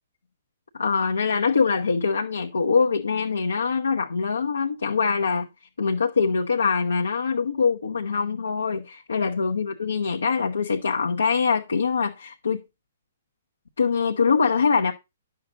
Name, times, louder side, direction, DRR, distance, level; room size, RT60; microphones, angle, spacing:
voice 1, 0.7-5.5 5.8-12.6 13.8-14.9, left 5 dB, 80° left, 1.0 m, -23 dB
10.5 x 6.8 x 3.9 m
figure-of-eight pair, 125°, 0 cm